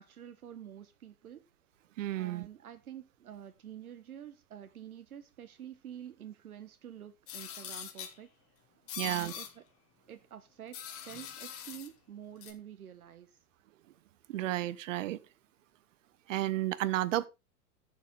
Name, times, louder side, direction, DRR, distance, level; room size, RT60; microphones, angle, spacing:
voice 1, 0.0-1.4 2.1-8.3 9.0-9.6 10.1-13.4, right 10 dB, 75° right, 1.4 m, -48 dB
voice 2, 2.0-2.5 9.0-9.3 14.3-15.2 16.3-17.3, right 14 dB, 55° right, 1.1 m, -32 dB
sound 1, 7.3-8.2 8.9-9.5 10.7-11.9 12.4-12.5, left 9 dB, 30° left, 2.1 m, -42 dB
14.5 x 7.4 x 3.7 m
hypercardioid pair, 110°, 44 cm